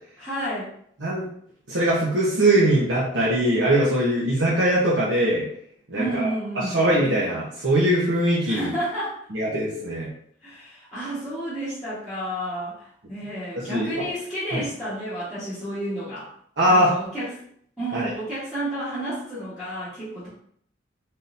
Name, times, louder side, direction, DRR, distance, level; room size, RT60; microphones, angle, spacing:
voice 1, 0.2-0.7 5.9-6.8 8.4-9.2 10.4-16.3 16.7-17.3 17.8-20.3, right 1 dB, ahead, -14 dB, 1.4 m, -31 dB
voice 2, 1.7-5.5 5.9-6.3 6.6-8.7 9.3-10.1 13.6-14.0 14.5-14.6 16.6-16.9 17.9-18.0, right 1 dB, 85° right, -7 dB, 1.0 m, -21 dB
4.1 x 3.8 x 2.6 m, 0.65 s
head